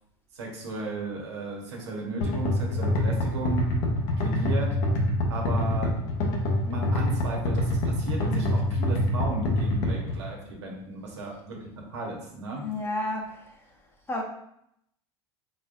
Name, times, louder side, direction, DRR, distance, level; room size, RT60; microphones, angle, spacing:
voice 1, 0.3-3.7 4.2-4.7 5.3-5.9 6.6-12.6, right 3 dB, 90° right, -1 dB, 1.1 m, -35 dB
sound 1, 2.2-10.2, left 1 dB, 60° left, 1.0 m, -25 dB
voice 2, 12.6-13.7 14.1-14.2, left 1 dB, 15° left, 0 dB, 0.9 m, -32 dB
4.1 x 3.8 x 2.5 m, 0.75 s
hypercardioid pair, 95°, 14 cm